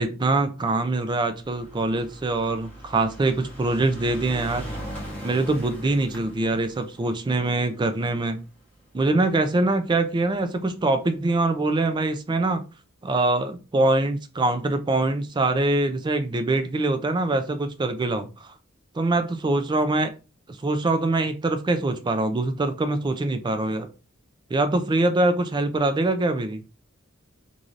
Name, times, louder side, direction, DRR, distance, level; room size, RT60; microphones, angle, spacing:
voice 1, 0.0-4.7 5.2-8.4 8.9-12.6 13.0-18.5 18.9-20.1 20.5-23.9 24.5-26.6, right 2 dB, 20° right, 9 dB, 0.3 m, -24 dB
sound 1, 1.4-9.9 10.7-10.8 11.0-11.1 11.3-11.4, equal, 10° left, 1.1 m, -40 dB
3.1 x 2.6 x 2.5 m, 0.32 s
head